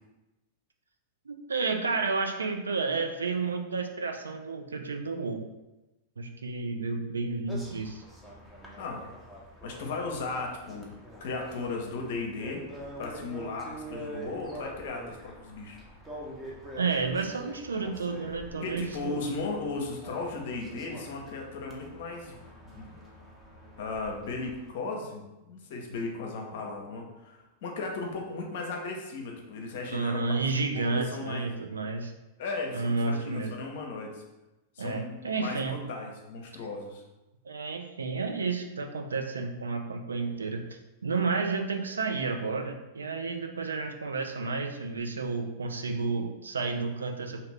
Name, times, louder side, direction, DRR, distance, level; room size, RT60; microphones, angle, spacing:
voice 1, 1.3-5.4 6.2-8.0 16.8-19.2 29.9-32.1 32.7-33.5 34.8-35.8 37.4-40.6 41.0-47.4, right 4 dB, 85° right, 5 dB, 0.3 m, -31 dB
sound 1, 7.5-24.7, right 1 dB, 5° right, 0.7 m, -45 dB
voice 2, 8.8-9.1 9.6-12.7 13.0-15.8 18.6-22.4 22.7-22.9 23.8-30.4 30.7-31.5 32.4-34.2 34.8-37.0, left 3 dB, 60° left, 1 dB, 0.6 m, -36 dB
2.7 x 2.5 x 3.2 m, 1.0 s
hypercardioid pair, 100°, 0 cm